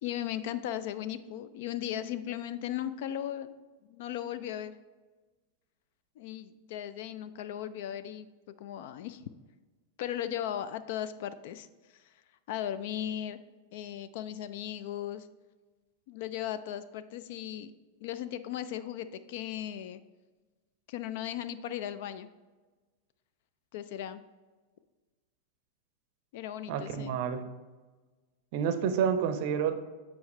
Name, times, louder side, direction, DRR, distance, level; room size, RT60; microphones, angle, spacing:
voice 1, 0.0-3.6 3.9-4.7 6.2-8.3 8.6-9.3 10.0-11.7 12.5-13.4 13.7-15.3 16.1-17.7 18.0-20.0 20.9-22.3 23.7-24.2 26.3-27.2, left 11 dB, 50° left, 13 dB, 0.3 m, -37 dB
voice 2, 26.7-27.4 28.5-29.8, right 7 dB, 45° right, 9 dB, 0.6 m, -29 dB
7.0 x 4.6 x 3.1 m, 1.3 s
figure-of-eight pair, 90°, 0 cm